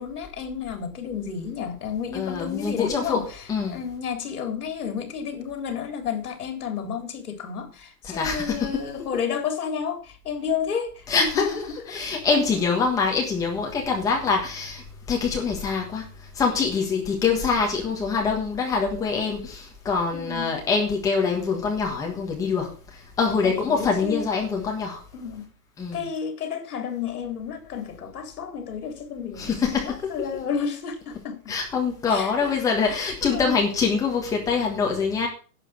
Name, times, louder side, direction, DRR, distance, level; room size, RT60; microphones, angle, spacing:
voice 1, 0.0-12.0 17.3-17.4 20.1-20.6 23.4-24.3 25.1-25.5 25.9-31.6 32.1-32.5 32.8-33.6, left 6 dB, 65° left, 3.7 m, -31 dB
voice 2, 2.1-3.2 3.5-3.8 8.1-8.7 11.1-11.4 11.9-14.8 15.1-16.1 16.3-22.7 23.2-25.0 25.8-26.1 29.4-30.1 31.5-35.3, left 5 dB, 5° left, 1.4 m, -24 dB
11.0 x 7.5 x 6.1 m
hypercardioid pair, 175°, 47 cm